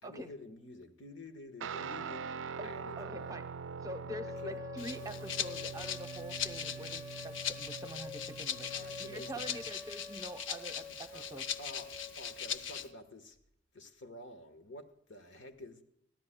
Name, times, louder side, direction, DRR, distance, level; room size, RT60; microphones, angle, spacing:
voice 1, 0.0-2.3 2.6-3.4 4.4-4.6 8.7-9.7 11.1-11.3 11.6-13.4 13.7-15.8, left 1 dB, 75° left, 9 dB, 1.3 m, -49 dB
Guitar, 1.6-9.8, right 6 dB, 90° right, 0.4 m, -44 dB
voice 2, 3.0-3.5 3.8-11.5, right 1 dB, 20° right, 8 dB, 0.8 m, -45 dB
sound 1, 4.0-13.0, left 2 dB, 20° left, 2.8 m, -48 dB
Rattle (instrument), 4.8-12.9, left 8 dB, 90° left, 0.7 m, -40 dB
22.5 x 15.0 x 2.2 m, 0.74 s
head